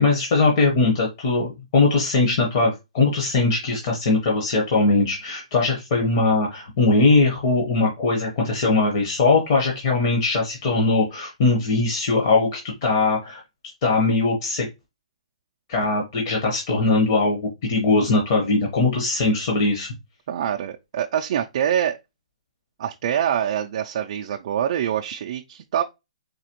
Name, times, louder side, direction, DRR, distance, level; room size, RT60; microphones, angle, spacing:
voice 1, 0.0-13.4 13.8-14.7 15.7-19.9, left 3 dB, 35° left, 1.0 m, -20 dB
voice 2, 20.3-22.0 22.8-25.8, right 9 dB, 45° right, 0.3 m, -25 dB
4.1 x 2.9 x 2.9 m
hypercardioid pair, 170°, 4 cm